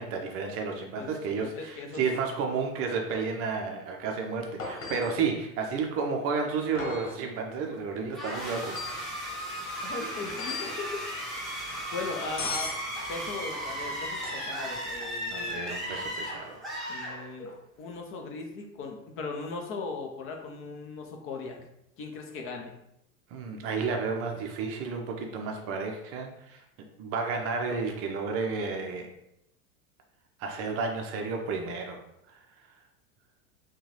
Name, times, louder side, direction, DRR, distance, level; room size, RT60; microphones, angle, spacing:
voice 1, 0.0-9.5 15.3-16.7 23.3-26.6 27.0-29.1 30.4-32.0 32.3-32.4, right 5 dB, 30° right, 2 dB, 0.6 m, -32 dB
voice 2, 0.9-2.0 9.8-11.0 11.9-12.8 13.1-15.6 16.9-17.5 17.8-21.6 22.0-22.7, left 4 dB, 30° left, 2 dB, 0.7 m, -38 dB
sound 1, 4.6-5.2 6.7-7.2 8.6-9.1 10.3-10.8 12.4-12.8 14.1-14.6 17.4-17.5, left 4 dB, 60° left, 1.3 m, -37 dB
sound 2, 8.1-17.7, equal, ahead, 1.1 m, -36 dB
6.1 x 2.4 x 3.1 m, 0.81 s
figure-of-eight pair, 80°, 42 cm